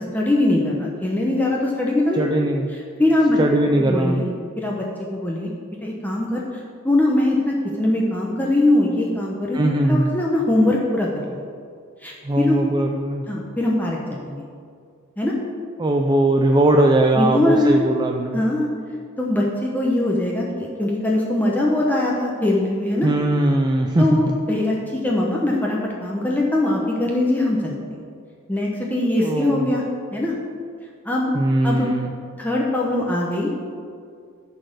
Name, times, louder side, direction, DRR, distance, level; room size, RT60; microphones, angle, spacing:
voice 1, 0.0-2.2 3.0-3.4 3.8-4.3 4.6-4.9 5.1-5.5 5.8-9.6 9.9-11.4 12.0-12.6 13.3-14.4 15.2-15.3 17.2-17.8 18.3-18.7 19.2-23.1 24.0-27.8 28.5-29.8 30.1-30.3 31.0-31.3 31.6-31.9 32.4-33.5, left 1 dB, 10° left, -3 dB, 0.8 m, -21 dB
voice 2, 2.1-2.7 3.4-4.3 9.5-10.1 12.2-13.2 15.8-18.4 23.0-24.3 29.2-29.7 31.3-32.1, right 1 dB, 20° right, 2 dB, 0.4 m, -20 dB
11.5 x 4.2 x 6.6 m, 2.3 s
head